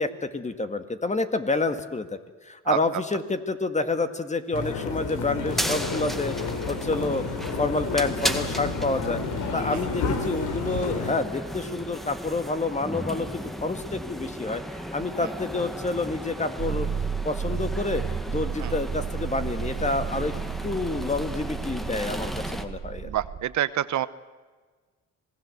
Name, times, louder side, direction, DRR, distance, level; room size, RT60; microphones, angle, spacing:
voice 1, 0.0-6.3 6.7-7.2 7.6-9.2 9.5-14.6 14.9-16.9 17.2-18.0 18.3-20.3 20.6-23.1, left 3 dB, 25° left, 10 dB, 2.0 m, -28 dB
sound 1, 4.5-11.1, left 4 dB, 85° left, 3.3 m, -31 dB
sound 2, 5.5-22.7, equal, ahead, 1.9 m, -35 dB
sound 3, 16.6-23.4, right 7 dB, 45° right, 1.3 m, -32 dB
voice 2, 23.0-24.1, right 12 dB, 70° right, 15 dB, 1.0 m, -27 dB
26.5 x 18.5 x 8.0 m, 1.4 s
cardioid pair, 90°, 30 cm